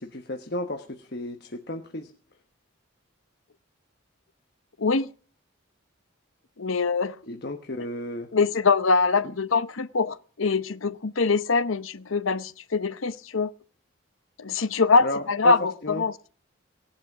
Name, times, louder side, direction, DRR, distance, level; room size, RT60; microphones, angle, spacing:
voice 1, 0.0-2.1 7.3-8.3 15.0-15.5 15.8-16.1, left 1 dB, 50° left, 1.2 m, -33 dB
voice 2, 4.8-5.1 6.6-7.2 8.3-13.5 14.4-16.1, left 4 dB, 75° left, 0.8 m, -23 dB
18.0 x 11.5 x 6.1 m
head